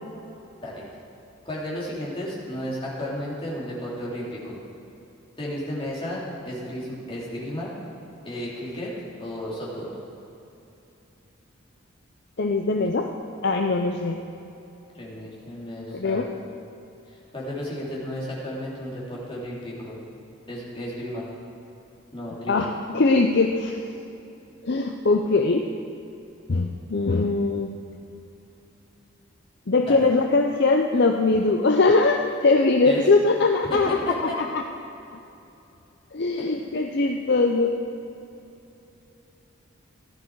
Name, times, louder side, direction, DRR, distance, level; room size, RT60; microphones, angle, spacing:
voice 1, 1.4-4.6 5.4-7.7 8.2-8.9 9.2-9.9 14.9-16.3 17.1-20.0 20.5-21.2 22.1-22.5 29.8-30.0 32.8-33.0 33.6-34.1 36.4-36.5, left 1 dB, 25° left, -6 dB, 2.9 m, -33 dB
voice 2, 12.4-13.1 13.4-14.2 15.9-16.3 22.5-23.8 24.6-25.6 26.5-27.7 29.7-34.6 36.1-37.8, left 3 dB, 50° left, 3 dB, 0.6 m, -21 dB
15.0 x 11.5 x 4.7 m, 2.8 s
head